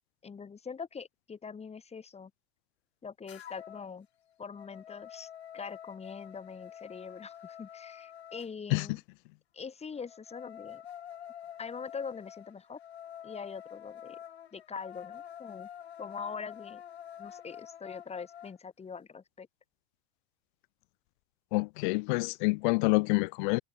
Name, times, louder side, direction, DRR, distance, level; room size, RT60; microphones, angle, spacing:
voice 1, 0.2-2.3 3.0-4.1 4.4-9.0 9.5-10.8 11.6-12.8 13.2-14.2 14.5-15.7 16.0-16.8 17.2-19.5, left 5 dB, 20° left, 2.2 m, -43 dB
sound 1, 3.3-3.9 4.3-8.5 10.0-18.5, left 10 dB, 80° left, 1.4 m, -47 dB
voice 2, 21.5-23.6, left 28 dB, 55° left, 0.5 m, -27 dB
figure-of-eight pair, 80°, 32 cm